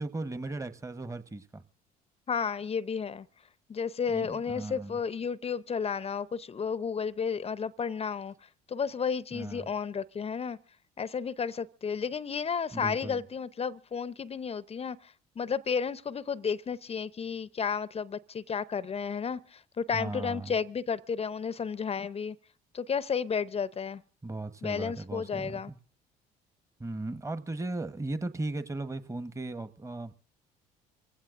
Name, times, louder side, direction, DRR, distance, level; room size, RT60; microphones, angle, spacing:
voice 1, 0.0-1.6 4.1-5.0 9.3-9.7 12.7-13.2 19.9-20.6 24.2-25.8 26.8-30.1, right 2 dB, 15° right, 1.2 m, -37 dB
voice 2, 2.3-3.3 3.7-8.3 8.7-10.6 11.0-22.4 22.7-24.0 24.6-25.7, left 6 dB, 35° left, 0.7 m, -32 dB
26.5 x 16.0 x 2.6 m
hypercardioid pair, 60°, 19 cm